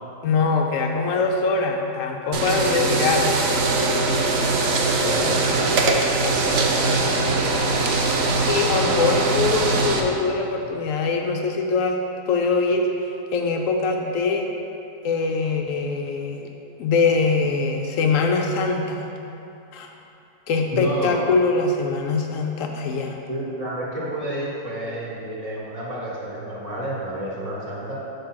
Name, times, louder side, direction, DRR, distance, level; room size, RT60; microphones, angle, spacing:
voice 1, 0.2-3.3 8.5-12.0 12.3-14.5 15.0-16.5 16.8-19.0 19.7-19.9 20.5-23.2, left 4 dB, 70° left, 2 dB, 0.7 m, -23 dB
sound 1, 2.3-10.0, right 3 dB, 65° right, 1.0 m, -21 dB
voice 2, 5.0-7.2 20.7-21.2 23.3-28.0, right 1 dB, 30° right, -5 dB, 0.7 m, -30 dB
5.0 x 4.8 x 6.2 m, 2.8 s
omnidirectional pair, 1.8 m